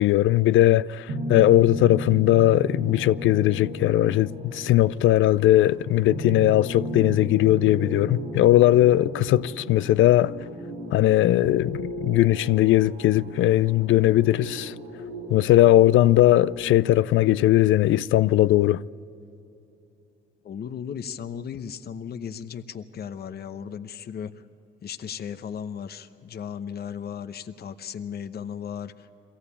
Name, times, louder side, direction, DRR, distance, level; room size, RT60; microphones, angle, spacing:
voice 1, 0.0-10.3 10.9-14.7 15.3-18.8, left 14 dB, 80° left, 0.5 m, -19 dB
sound 1, 1.1-16.7, equal, 85° right, 7.4 m, -35 dB
voice 2, 20.4-24.4 24.8-29.1, left 7 dB, 55° left, 0.9 m, -36 dB
22.5 x 16.5 x 8.5 m
cardioid pair, 90°, 20 cm